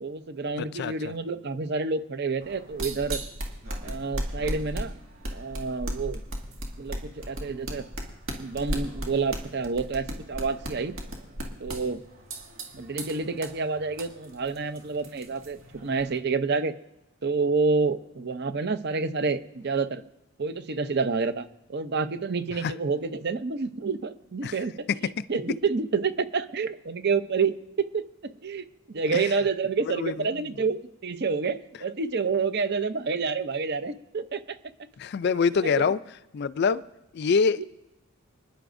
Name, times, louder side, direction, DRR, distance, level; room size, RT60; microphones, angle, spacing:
voice 1, 0.0-3.2 3.8-5.0 5.3-6.2 6.8-7.8 8.4-11.0 11.6-12.0 12.7-16.7 17.2-20.0 20.4-34.6 35.2-35.9 37.6-37.7, right 4 dB, 50° right, 0.6 m, -29 dB
voice 2, 0.6-0.9 22.6-22.7 24.4-24.5 29.1-29.2 30.0-30.3 35.0-36.0 36.3-36.8 37.1-37.6, left 5 dB, 50° left, 0.4 m, -25 dB
sound 1, 2.4-16.2, right 1 dB, 70° right, 1.9 m, -37 dB
26.0 x 10.5 x 2.6 m
head